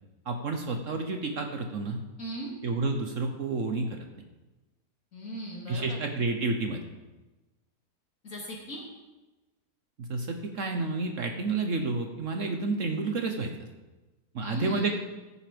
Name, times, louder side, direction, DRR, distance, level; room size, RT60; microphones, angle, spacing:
voice 1, 0.3-2.0 2.6-4.0 5.7-6.8 10.0-13.5 14.3-15.0, right 3 dB, 55° right, 4 dB, 1.2 m, -30 dB
voice 2, 2.2-2.5 5.1-6.0 8.2-8.8 14.4-15.0, right 1 dB, 50° left, -3 dB, 3.1 m, -38 dB
14.5 x 7.1 x 5.2 m, 1.1 s
omnidirectional pair, 1.8 m